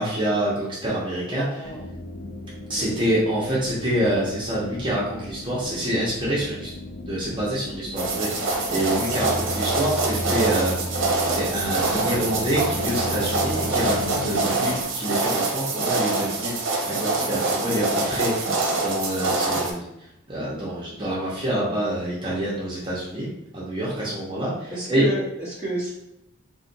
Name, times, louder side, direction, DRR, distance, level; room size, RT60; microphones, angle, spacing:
voice 1, 0.0-1.4 2.7-6.7 7.0-10.8 11.3-16.5 16.8-19.9 20.3-23.3 23.5-25.0, right 1 dB, 25° right, -7 dB, 0.7 m, -26 dB
voice 2, 1.3-1.8 2.8-2.9 24.7-25.9, right 1 dB, 15° left, -9 dB, 0.9 m, -30 dB
sound 1, 1.6-14.8, left 1 dB, 65° left, 0.6 m, -35 dB
sound 2, 8.0-19.7, right 3 dB, 65° right, 0.7 m, -25 dB
2.5 x 2.5 x 3.9 m, 0.84 s
head